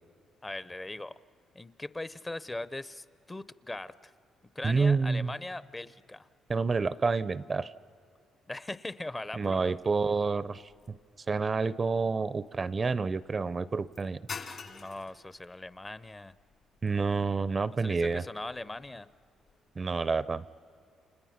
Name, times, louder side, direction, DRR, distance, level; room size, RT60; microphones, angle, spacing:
voice 1, 0.4-1.1 1.5-4.1 4.5-6.3 8.5-9.9 14.6-16.3 17.8-19.1, left 2 dB, 20° left, 16 dB, 0.6 m, -40 dB
voice 2, 4.6-5.3 6.5-7.7 9.4-11.0 11.3-14.2 16.8-18.2 19.8-20.4, right 4 dB, 35° right, 17 dB, 0.5 m, -28 dB
sound 1, 10.7-19.6, left 5 dB, 50° left, 1.9 m, -50 dB
30.0 x 27.5 x 5.8 m, 2.5 s
cardioid pair, 90°, 0 cm